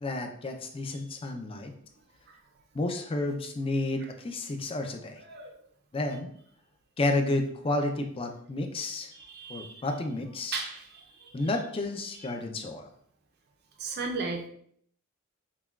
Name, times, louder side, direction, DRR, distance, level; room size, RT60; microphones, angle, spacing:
voice 1, 0.0-1.7 2.7-5.2 5.9-6.3 7.0-9.1 9.5-10.6 11.3-12.9, left 2 dB, 25° left, 4 dB, 0.4 m, -31 dB
voice 2, 5.2-5.6 9.2-9.8 10.5-11.3 13.8-14.5, right 4 dB, 50° right, 0 dB, 0.5 m, -35 dB
5.8 x 2.2 x 2.3 m, 0.64 s
head